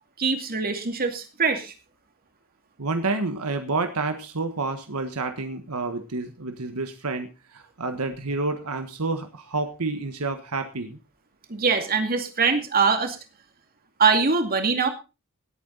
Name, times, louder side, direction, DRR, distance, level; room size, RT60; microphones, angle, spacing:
voice 1, 0.2-1.7 11.5-13.2 14.0-14.9, right 5 dB, 45° right, 6 dB, 2.4 m, -23 dB
voice 2, 2.8-11.0, right 3 dB, 80° right, 7 dB, 1.4 m, -29 dB
18.0 x 8.9 x 4.0 m, 0.30 s
head